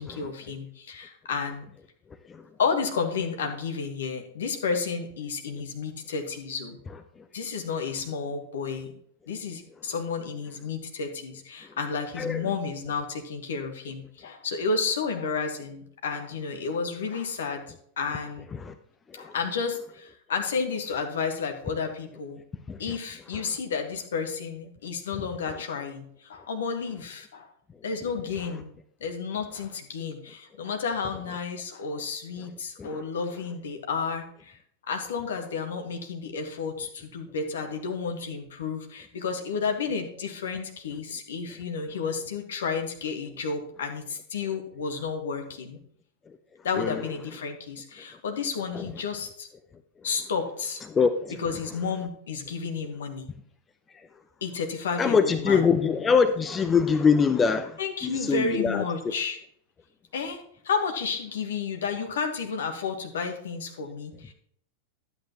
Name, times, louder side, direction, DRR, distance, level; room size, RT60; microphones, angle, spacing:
voice 1, 0.0-1.6 2.6-6.8 7.3-8.9 9.3-17.6 18.0-18.5 19.1-22.4 22.8-27.5 27.8-28.7 29.0-34.6 34.9-45.8 46.6-49.5 50.0-50.8 51.4-53.3 54.4-55.7 57.8-59.4 60.1-64.3, left 5 dB, 65° left, 1.4 m, -31 dB
voice 2, 50.9-51.3 55.0-58.8, left 5 dB, 20° left, 0.6 m, -23 dB
11.5 x 8.3 x 3.0 m
figure-of-eight pair, 90°, 0 cm